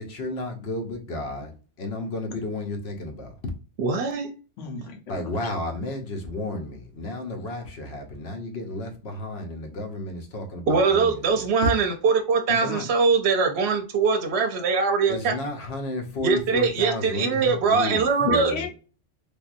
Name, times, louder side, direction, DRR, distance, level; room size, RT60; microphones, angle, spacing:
voice 1, 0.0-1.5 1.8-3.3 5.1-11.4 15.1-18.7, left 2 dB, 60° left, 1.1 m, -32 dB
voice 2, 3.8-4.3 10.7-15.3 16.2-18.5, right 5 dB, 65° right, 0.8 m, -22 dB
voice 3, 4.6-5.3 12.5-12.9 18.2-18.7, left 4 dB, 80° left, 1.2 m, -32 dB
3.5 x 2.6 x 2.5 m
omnidirectional pair, 1.3 m